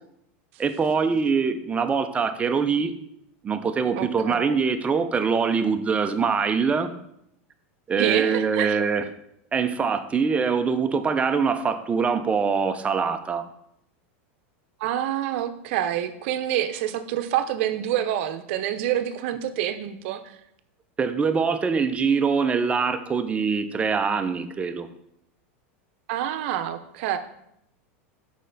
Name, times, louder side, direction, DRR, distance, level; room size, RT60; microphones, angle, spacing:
voice 1, 0.6-2.9 3.4-6.9 7.9-9.0 9.5-13.5 21.0-24.9, right 5 dB, 20° right, 9 dB, 0.6 m, -23 dB
voice 2, 4.0-4.6 8.0-8.8 14.8-20.3 26.1-27.2, right 11 dB, 65° right, 10 dB, 0.7 m, -27 dB
6.4 x 5.1 x 3.9 m, 0.76 s
supercardioid pair, 125°, 7 cm